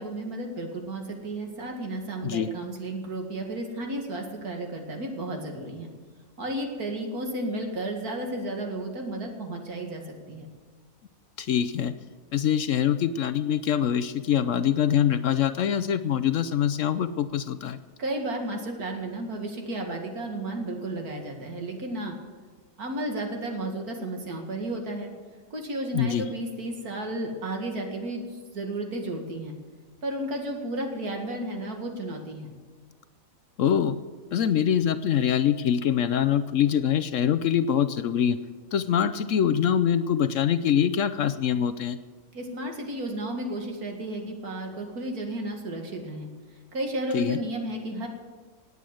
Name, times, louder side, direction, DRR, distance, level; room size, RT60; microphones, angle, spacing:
voice 1, 0.0-5.9 6.4-10.5 18.0-22.2 22.8-25.1 25.5-29.6 30.0-32.5 42.3-46.3 46.7-48.1, right 1 dB, 70° right, 2 dB, 2.5 m, -33 dB
voice 2, 11.4-11.9 12.3-17.8 25.9-26.3 33.6-34.0 34.3-38.4 38.7-42.0 47.1-47.4, left 9 dB, 65° left, 13 dB, 0.9 m, -24 dB
18.5 x 8.4 x 7.8 m, 1.5 s
omnidirectional pair, 1.6 m